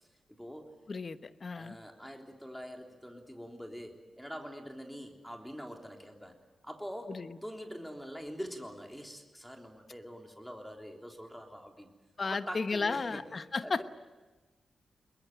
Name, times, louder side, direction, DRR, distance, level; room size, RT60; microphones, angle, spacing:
voice 1, 0.3-0.7 1.5-6.4 6.6-11.9 12.2-13.2 13.6-13.8, equal, ahead, 3 dB, 3.5 m, -44 dB
voice 2, 0.9-1.8 7.1-7.3 12.2-13.8, left 4 dB, 50° left, 12 dB, 1.1 m, -34 dB
22.0 x 21.0 x 9.1 m, 1.2 s
cardioid pair, 50°, 0 cm